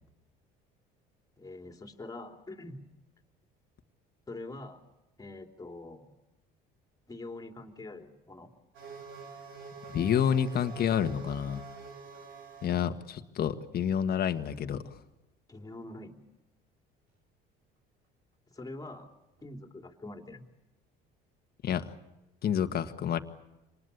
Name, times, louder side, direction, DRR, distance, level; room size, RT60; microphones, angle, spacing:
voice 1, 1.4-2.8 4.3-4.8 5.2-6.1 7.1-8.5 15.5-16.2 18.5-19.1 19.4-20.4, left 2 dB, 20° left, 4 dB, 3.2 m, -44 dB
sound 1, 8.7-12.7 14.6-14.7 19.4-19.5, right 5 dB, 65° right, 5.1 m, -46 dB
voice 2, 9.9-11.6 12.6-15.0 21.6-21.9 22.4-23.2, left 8 dB, 50° left, 8 dB, 1.7 m, -29 dB
26.5 x 19.5 x 8.4 m, 0.98 s
supercardioid pair, 85°, 20 cm